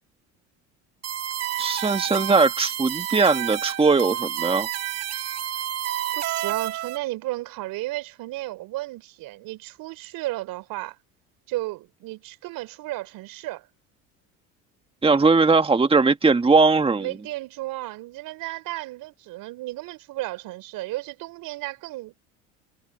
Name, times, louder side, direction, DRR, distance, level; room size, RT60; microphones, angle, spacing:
sound 1, 1.0-7.0, right 12 dB, 45° right, 1.4 m, -29 dB
voice 1, 1.6-4.7 15.0-17.1, right 4 dB, 15° right, 1.8 m, -19 dB
voice 2, 6.1-11.0 11.5-13.7 17.0-22.2, right 18 dB, 60° right, 3.7 m, -33 dB
hypercardioid pair, 80°, 37 cm